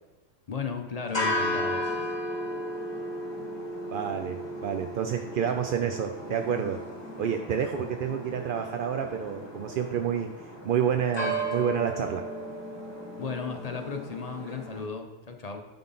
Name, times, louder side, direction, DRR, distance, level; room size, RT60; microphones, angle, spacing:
voice 1, 0.5-1.8 13.2-15.6, left 5 dB, 35° left, 4 dB, 0.8 m, -35 dB
sound 1, 1.0-14.9, equal, 20° left, 1.4 m, -35 dB
voice 2, 3.9-6.8 7.2-10.3 10.6-12.3, right 8 dB, 65° right, 5 dB, 0.5 m, -29 dB
11.5 x 3.9 x 5.6 m, 1.1 s
omnidirectional pair, 1.4 m